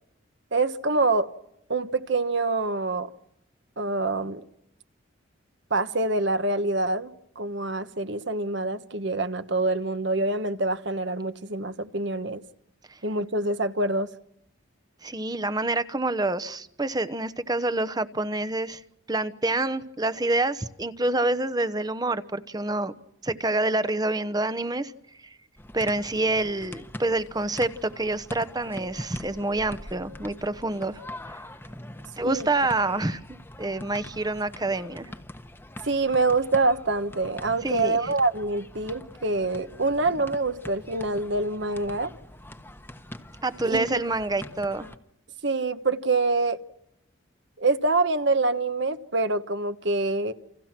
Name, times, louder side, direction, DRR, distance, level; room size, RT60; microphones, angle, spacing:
voice 1, 0.5-1.3 1.7-3.1 3.8-4.4 5.7-12.4 13.0-14.1 32.2-32.5 35.8-42.1 43.6-43.8 45.4-46.6 47.6-50.3, right 3 dB, 55° right, 1.3 m, -25 dB
voice 2, 15.0-18.8 19.1-22.9 23.2-24.9 25.7-31.0 32.2-35.1 37.6-38.0 43.4-44.9, right 2 dB, 20° right, 1.0 m, -27 dB
sound 1, 25.6-45.0, left 1 dB, 10° left, 1.2 m, -43 dB
29.5 x 28.0 x 6.0 m
head